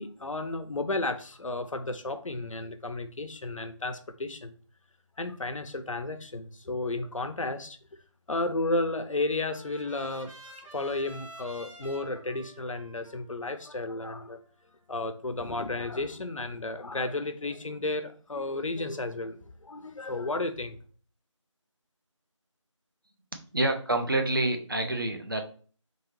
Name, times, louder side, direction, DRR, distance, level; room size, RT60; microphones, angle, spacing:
voice 1, 0.0-4.5 5.2-7.8 8.3-10.3 10.7-14.4 14.9-20.8, left 2 dB, 80° left, 9 dB, 0.7 m, -33 dB
Trumpet, 8.7-14.9, right 1 dB, 80° right, 1.5 m, -51 dB
voice 2, 23.5-25.4, right 2 dB, 40° right, 4 dB, 0.6 m, -27 dB
3.8 x 3.0 x 2.9 m, 0.41 s
figure-of-eight pair, 175°, 17 cm